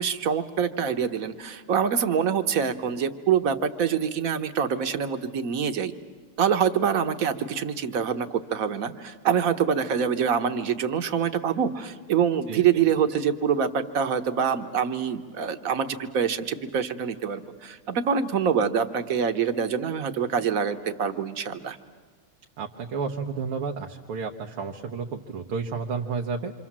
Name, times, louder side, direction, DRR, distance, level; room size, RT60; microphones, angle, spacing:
voice 1, 0.0-5.9 6.4-21.8, right 7 dB, 50° right, 8 dB, 1.3 m, -25 dB
voice 2, 22.6-26.5, right 5 dB, 85° right, 1 dB, 2.0 m, -31 dB
27.0 x 26.0 x 7.4 m, 1.5 s
omnidirectional pair, 2.3 m